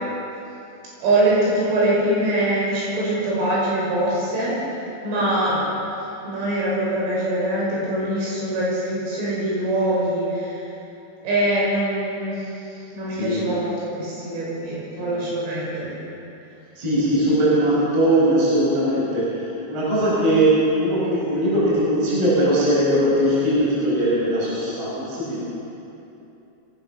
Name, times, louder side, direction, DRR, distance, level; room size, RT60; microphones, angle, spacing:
voice 1, 1.0-4.5 5.0-5.6 6.3-10.6 11.2-12.4 12.9-15.9, right 1 dB, 75° right, -5 dB, 8.4 m, -23 dB
voice 2, 13.1-13.5 15.0-15.3 16.8-25.4, right 1 dB, 30° right, -7 dB, 6.1 m, -20 dB
24.0 x 18.0 x 6.3 m, 2.8 s
omnidirectional pair, 5.7 m